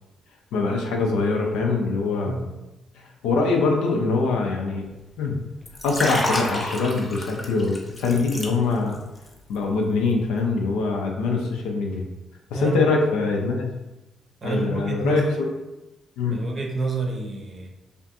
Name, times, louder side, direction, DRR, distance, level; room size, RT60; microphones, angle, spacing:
voice 1, 0.5-2.5 2.9-4.8 5.2-5.4 5.8-9.0 9.5-12.1 12.5-13.7 14.4-15.2 16.2-16.4, left 3 dB, 80° left, 1 dB, 0.4 m, -23 dB
Liquid, 5.6-9.0 9.3-9.6, left 1 dB, 30° left, 0.6 m, -29 dB
voice 2, 12.5-12.9 14.4-15.4 16.3-17.7, right 2 dB, 45° right, 0 dB, 0.6 m, -28 dB
2.5 x 2.3 x 2.5 m, 1.0 s
hypercardioid pair, 45°, 0 cm